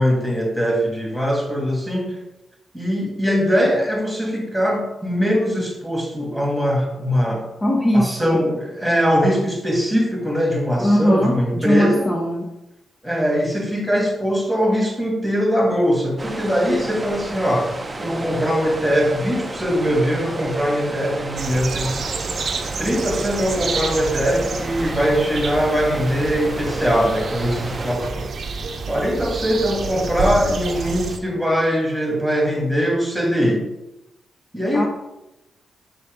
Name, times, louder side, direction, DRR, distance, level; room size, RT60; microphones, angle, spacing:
voice 1, 0.0-2.2 2.7-7.5 7.9-12.1 13.0-22.1 22.8-28.3 28.9-33.7 34.5-34.9, equal, ahead, -1 dB, 1.9 m, -21 dB
voice 2, 7.6-8.4 10.8-12.5 34.7-34.8, equal, 20° left, -1 dB, 0.8 m, -20 dB
sound 1, 16.2-28.0, right 2 dB, 20° right, 0.7 m, -32 dB
sound 2, 21.4-31.2, right 4 dB, 50° right, 0.8 m, -29 dB
5.7 x 4.1 x 5.2 m, 0.93 s
cardioid pair, 115°, 0 cm